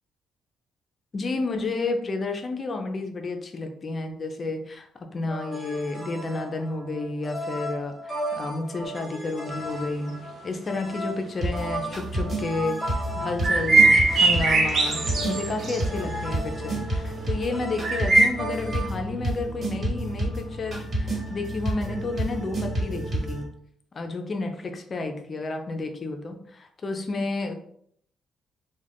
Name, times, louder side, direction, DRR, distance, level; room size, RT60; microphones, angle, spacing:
voice 1, 1.1-23.5 23.9-27.5, left 3 dB, 40° left, 5 dB, 0.5 m, -31 dB
sound 1, 5.3-18.9, right 1 dB, 10° right, 0.9 m, -36 dB
sound 2, 11.4-23.4, right 1 dB, 40° right, 1.5 m, -30 dB
sound 3, 13.4-15.8 16.1-16.2 17.8-18.3, right 3 dB, 55° right, 0.6 m, -20 dB
2.3 x 2.2 x 3.4 m, 0.67 s
cardioid pair, 90°, 0 cm